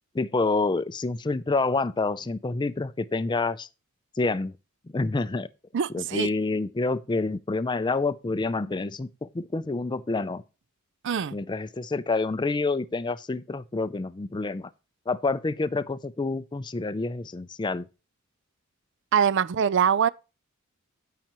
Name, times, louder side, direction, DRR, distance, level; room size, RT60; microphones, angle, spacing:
voice 1, 0.1-3.7 4.2-4.6 4.9-5.5 5.9-10.4 11.3-14.7 15.1-17.9, left 3 dB, 20° left, 0.4 m, -28 dB
voice 2, 5.7-6.3 11.0-11.4 19.1-20.1, right 7 dB, 55° right, 0.4 m, -23 dB
16.0 x 5.8 x 3.0 m
head